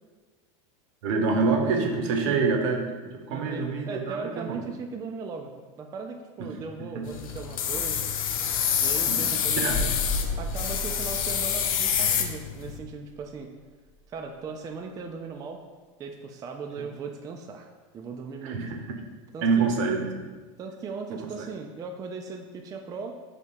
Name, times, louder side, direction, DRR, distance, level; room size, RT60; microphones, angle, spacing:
voice 1, 1.0-4.7 6.8-7.0 9.1-9.8 18.4-19.0 19.4-20.3 21.4-21.5, right 4 dB, 65° right, 3 dB, 0.7 m, -27 dB
voice 2, 3.3-5.5 5.8-8.1 8.8-9.9 10.4-13.5 14.1-15.6 16.0-18.6 19.3-19.7 20.6-23.1, right 5 dB, 20° right, 3 dB, 0.3 m, -38 dB
sound 1, 7.0-12.8, left 8 dB, 85° left, 0.4 m, -27 dB
sound 2, 9.7-13.4 13.7-13.8, left 2 dB, 35° left, 1.0 m, -34 dB
3.5 x 2.8 x 4.3 m, 1.3 s
hypercardioid pair, 110°, 17 cm